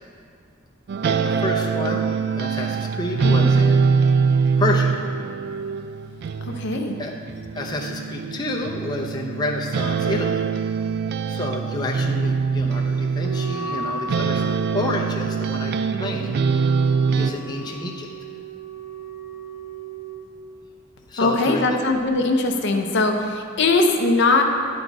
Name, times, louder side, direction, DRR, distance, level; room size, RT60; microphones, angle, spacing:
sound 1, 0.9-13.8 14.1-17.3, right 5 dB, 55° right, 0.3 m, -23 dB
voice 1, 1.0-2.1 2.4-3.9 4.6-5.0 7.0-7.1 7.5-10.4 11.3-16.4 17.1-18.1 21.1-21.7, left 2 dB, 20° left, -1 dB, 0.5 m, -29 dB
voice 2, 6.4-6.9 21.2-24.4, left 3 dB, 60° left, 4 dB, 0.6 m, -20 dB
Wind instrument woodwind instrument, 13.1-20.2, right 2 dB, 35° right, 1.4 m, -35 dB
10.0 x 4.0 x 4.6 m, 2.3 s
head